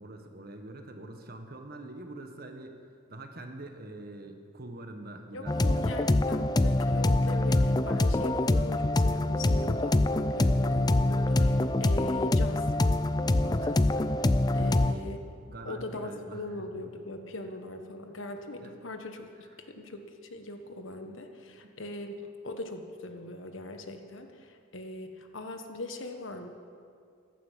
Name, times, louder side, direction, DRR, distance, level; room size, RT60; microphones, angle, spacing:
voice 1, 0.0-2.8 3.1-6.2 13.6-13.8 14.5-15.1 15.5-16.7 18.6-18.7 21.6-21.7, right 2 dB, 45° right, 5 dB, 1.4 m, -44 dB
voice 2, 5.3-12.7 13.4-14.1 14.5-15.2 15.6-20.0 20.3-26.5, left 2 dB, 70° left, 6 dB, 1.3 m, -40 dB
sound 1, 5.5-14.9, left 2 dB, 20° left, 0.4 m, -25 dB
15.0 x 11.5 x 7.4 m, 2.4 s
head